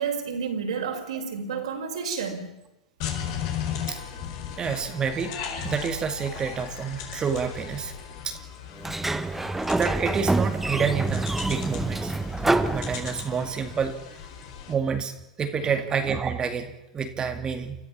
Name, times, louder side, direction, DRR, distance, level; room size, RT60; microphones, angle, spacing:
voice 1, 0.0-2.5 9.0-9.3 15.6-15.8, right 6 dB, 75° right, 2 dB, 5.4 m, -31 dB
sound 1, 3.0-14.7, left 8 dB, 55° left, 4.5 m, -37 dB
voice 2, 4.6-5.3 5.6-7.9 8.2-8.4 9.7-12.4 12.7-14.2 14.7-15.1 15.4-17.8, right 6 dB, 25° right, 6 dB, 2.2 m, -28 dB
Sliding door, 8.8-13.5, right 2 dB, 5° right, 1.1 m, -27 dB
30.0 x 13.5 x 7.4 m, 0.91 s
hypercardioid pair, 105°, 3 cm